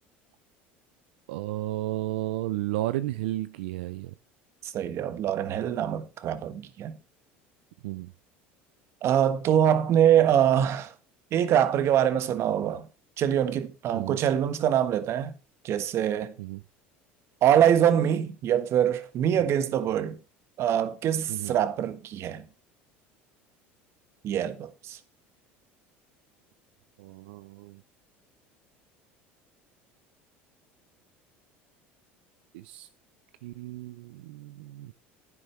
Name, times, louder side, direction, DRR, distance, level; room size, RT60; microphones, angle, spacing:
voice 1, 1.3-4.1 7.8-8.1 13.9-14.2 16.4-16.6 21.3-21.5 27.0-27.8 32.5-32.9 33.4-34.9, right 16 dB, 85° right, 0.6 m, -33 dB
voice 2, 4.7-7.0 9.0-10.9 11.3-12.9 13.2-15.3 15.6-16.3 17.4-20.2 20.6-22.4 24.2-25.0, right 10 dB, 50° right, 1.4 m, -24 dB
11.0 x 9.8 x 3.3 m
supercardioid pair, 100°, 6 cm